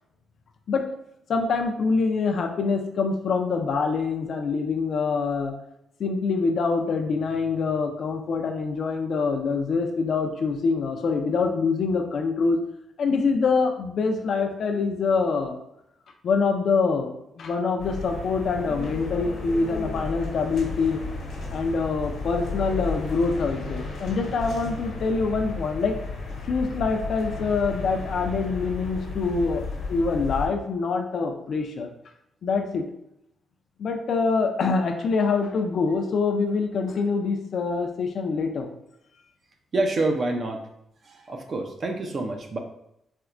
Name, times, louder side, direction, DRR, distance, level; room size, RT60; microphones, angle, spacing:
voice 1, 1.3-5.5 6.0-12.6 13.0-15.6 16.2-17.1 17.4-21.0 21.5-26.0 26.5-31.9 32.4-32.8 33.8-38.7, left 4 dB, 55° left, 4 dB, 0.4 m, -25 dB
sound 1, 17.8-30.5, left 3 dB, 80° left, 1.0 m, -33 dB
voice 2, 39.7-40.7 41.0-42.6, right 2 dB, 35° right, 4 dB, 0.4 m, -27 dB
4.3 x 2.1 x 2.4 m, 0.77 s
wide cardioid pair, 155°, 0 cm